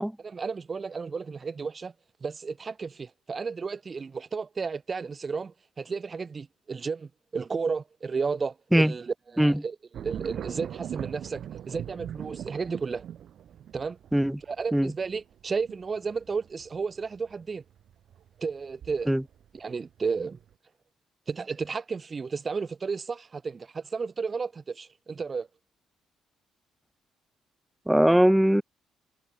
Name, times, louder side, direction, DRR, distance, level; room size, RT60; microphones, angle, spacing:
voice 1, 0.2-1.9 2.2-13.0 13.7-14.0 14.5-17.6 18.4-19.1 19.5-20.4 21.3-25.5, right 5 dB, 30° right, 7.4 m, -33 dB
sound 1, 9.9-19.6 20.0-20.5, right 10 dB, 60° right, 7.7 m, -41 dB
voice 2, 27.9-28.6, right 1 dB, 5° right, 1.1 m, -20 dB
cardioid pair, 120°, 0 cm